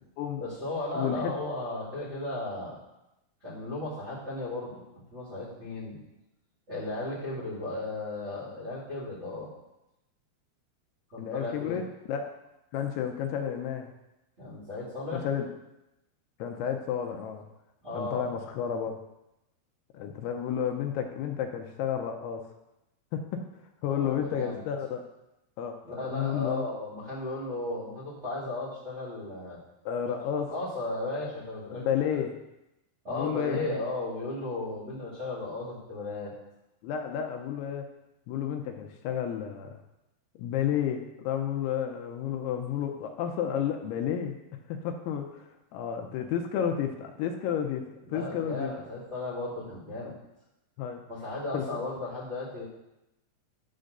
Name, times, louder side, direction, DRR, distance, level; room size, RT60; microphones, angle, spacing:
voice 1, 0.4-2.8 3.4-6.0 6.7-9.5 11.1-11.8 14.4-15.2 17.8-18.4 23.9-24.6 25.8-29.6 30.4-31.9 33.0-36.3 48.0-50.1 51.1-52.6, left 2 dB, 25° right, -9 dB, 1.5 m, -35 dB
voice 2, 0.9-1.3 11.2-11.8 12.1-12.3 12.7-13.9 15.1-15.5 16.4-17.4 17.9-18.9 19.9-22.4 23.1-23.4 23.8-25.0 25.6-26.6 29.9-30.5 31.7-32.3 33.1-33.8 36.8-37.9 38.3-39.8 40.4-44.4 44.7-47.8 48.1-48.7 50.8-51.0 51.5-51.6, left 9 dB, 80° left, 4 dB, 2.6 m, -31 dB
11.5 x 3.8 x 6.6 m, 0.92 s
omnidirectional pair, 4.8 m